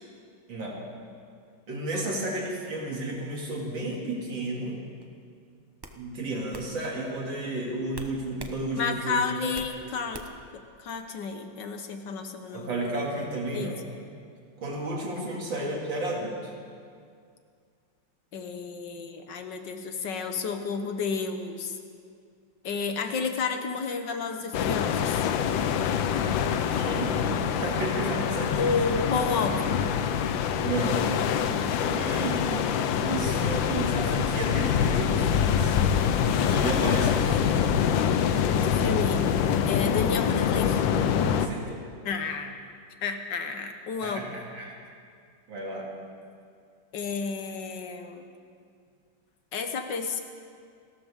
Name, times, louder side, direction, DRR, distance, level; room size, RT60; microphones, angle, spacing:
voice 1, 1.7-4.8 6.0-9.5 9.8-9.9 12.5-13.8 14.6-16.5 26.7-28.7 30.6-31.1 31.9-35.8 36.5-37.6 41.3-41.8 44.0-44.8 45.5-45.9, right 2 dB, 75° right, -2 dB, 3.2 m, -32 dB
sound 1, 5.0-5.2 5.8-6.0 6.5-6.7 7.9-8.6 9.0-9.8 10.1-10.5, right 2 dB, 30° right, 0.4 m, -42 dB
voice 2, 8.8-10.2 10.8-12.7 13.5-13.7 15.3-15.4 18.3-21.8 22.6-25.3 28.6-29.8 38.5-39.2 39.7-40.8 42.1-42.6 43.0-44.3 46.9-48.3 49.5-50.2, left 5 dB, 70° left, 6 dB, 1.7 m, -31 dB
sound 2, 24.5-41.5, left 8 dB, 85° left, 1.5 m, -25 dB
29.0 x 13.5 x 3.7 m, 2.2 s
omnidirectional pair, 2.1 m